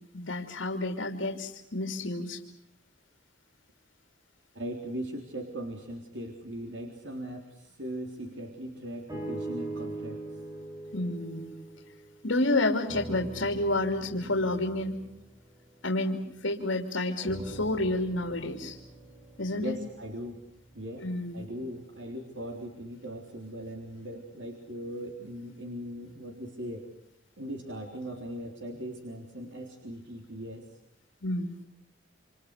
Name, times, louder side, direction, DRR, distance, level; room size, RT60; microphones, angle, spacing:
voice 1, 0.1-2.4 10.9-11.5 12.2-15.0 15.8-18.8 19.4-19.7 21.0-21.4 31.2-31.5, left 2 dB, 85° left, 5 dB, 3.0 m, -30 dB
voice 2, 4.5-10.4 19.6-20.4 20.7-21.1 21.3-26.9 27.4-30.7, equal, 70° right, 3 dB, 3.8 m, -39 dB
sound 1, 9.1-12.4 12.8-16.6 17.2-21.4 22.1-22.2, right 2 dB, 20° right, 5.4 m, -43 dB
28.0 x 27.5 x 6.7 m, 0.77 s
head